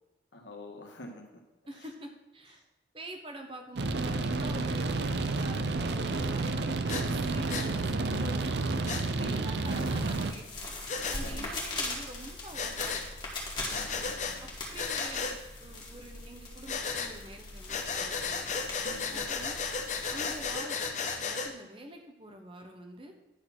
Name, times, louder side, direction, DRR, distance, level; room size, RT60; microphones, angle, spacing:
voice 1, 0.3-1.3 9.1-10.1 11.2-11.5 13.7-14.5 18.8-19.5, left 1 dB, 75° left, 2 dB, 1.6 m, -47 dB
voice 2, 1.7-2.6 2.9-8.8 9.2-10.7 11.1-13.0 14.4-18.5 19.1-19.6 20.1-20.8 21.2-23.1, right 1 dB, 30° right, 3 dB, 1.1 m, -46 dB
sound 1, 3.8-10.3, right 3 dB, 65° right, 0.6 m, -30 dB
Breathing, 6.9-7.0 7.5-7.7 8.8-9.0 10.9-11.2 12.5-13.1 13.7-14.4 14.7-15.4 16.7-17.1 17.7-21.5, left 5 dB, 40° left, 0.8 m, -34 dB
sound 2, 9.6-20.5, left 2 dB, 25° left, 2.1 m, -41 dB
10.5 x 4.2 x 6.0 m, 1.0 s
head